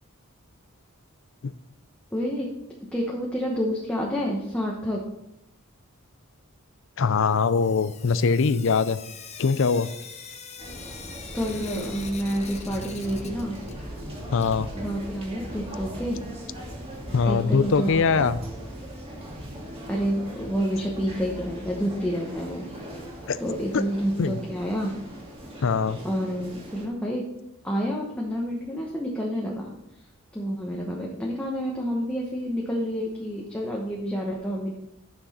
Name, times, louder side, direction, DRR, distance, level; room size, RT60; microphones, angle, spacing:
voice 1, 2.1-2.5 2.9-5.0 11.3-13.6 14.7-16.3 17.3-18.3 19.9-22.7 23.4-24.9 26.0-27.2 27.6-29.7 30.3-34.7, equal, 5° left, -3 dB, 1.0 m, -29 dB
voice 2, 7.0-9.0 9.4-9.9 14.3-14.7 17.1-18.4 23.3-23.4 23.7-23.8 24.2-24.4 25.6-26.0, left 5 dB, 60° left, 14 dB, 0.4 m, -22 dB
Sink (filling or washing) / Drip, 7.3-14.0 14.3-16.2 17.4-17.5 17.8-17.9 18.2-18.3 21.2-21.3 21.8-21.9 22.4-22.5 23.1-23.2 23.8-23.9 24.8-24.9, left 6 dB, 30° left, 0.8 m, -44 dB
sound 1, 10.6-26.9, equal, 25° right, 2.0 m, -39 dB
10.5 x 6.1 x 4.3 m, 0.81 s
head